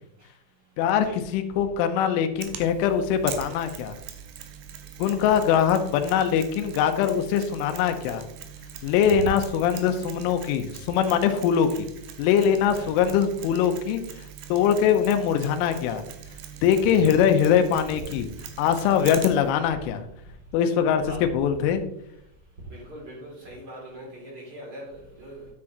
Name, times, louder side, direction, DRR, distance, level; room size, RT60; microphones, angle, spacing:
voice 1, 0.8-4.0 5.0-8.2 8.8-11.9 12.2-14.0 14.5-16.0 16.6-18.3 18.6-20.0 20.5-21.0 21.3-21.8, left 8 dB, 85° left, 7 dB, 3.2 m, -22 dB
Mechanisms, 2.4-19.5, right 9 dB, 75° right, 2.7 m, -42 dB
voice 2, 22.7-25.5, right 2 dB, 30° right, -3 dB, 2.1 m, -40 dB
9.7 x 8.5 x 2.9 m, 0.77 s
omnidirectional pair, 5.6 m